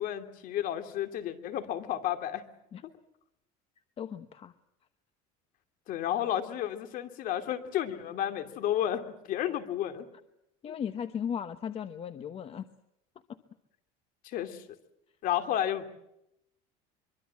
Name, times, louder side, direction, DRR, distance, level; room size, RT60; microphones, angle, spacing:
voice 1, 0.0-2.4 5.9-10.1 10.7-10.8 14.2-14.6 15.2-15.8, left 11 dB, 55° left, 8 dB, 2.9 m, -32 dB
voice 2, 4.0-4.5 10.6-12.7 13.3-13.4, left 8 dB, 35° left, 11 dB, 1.1 m, -36 dB
24.0 x 23.5 x 7.6 m, 0.83 s
cardioid pair, 125°, 17 cm